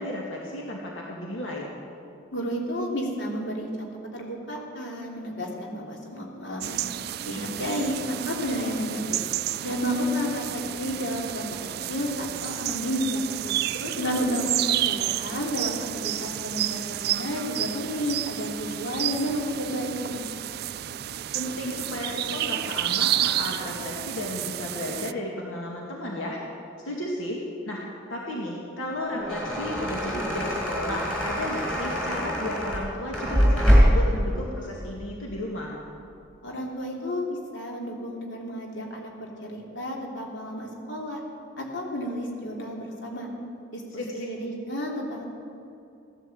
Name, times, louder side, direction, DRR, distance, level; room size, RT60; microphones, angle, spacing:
voice 1, 0.0-1.7 13.7-14.2 21.3-26.4 26.8-27.4 27.7-35.7 44.0-44.3, left 1 dB, 85° left, -2 dB, 2.1 m, -33 dB
voice 2, 2.3-6.8 7.2-9.2 9.6-11.4 11.9-13.5 14.0-20.2 36.4-41.2 41.6-43.3 43.7-45.3, equal, 65° left, -1 dB, 3.0 m, -31 dB
sound 1, 6.6-25.1, right 13 dB, 50° right, 0.3 m, -31 dB
sound 2, 28.9-34.1, equal, 5° left, 4.0 m, -23 dB
16.0 x 11.5 x 7.8 m, 2.7 s
head